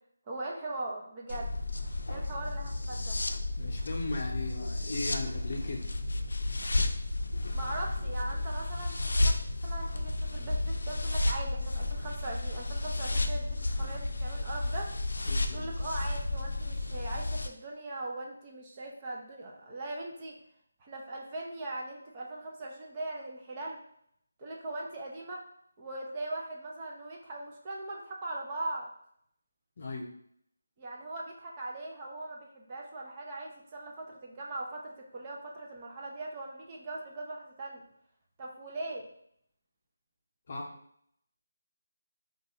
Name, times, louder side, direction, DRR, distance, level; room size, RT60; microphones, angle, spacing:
voice 1, 0.3-1.5 2.1-3.2 7.5-9.3 9.6-14.9 15.5-20.3 20.8-23.8 24.4-25.4 25.8-28.9 30.8-37.8 38.4-39.1, right 2 dB, 25° right, -2 dB, 0.5 m, -40 dB
sound 1, 1.3-17.5, left 2 dB, 75° left, 0.4 m, -32 dB
voice 2, 3.6-5.9 15.2-15.7 29.8-30.1 40.5-40.7, left 2 dB, 45° left, -1 dB, 0.7 m, -37 dB
2.6 x 2.3 x 4.1 m, 0.69 s
figure-of-eight pair, 165°, 0 cm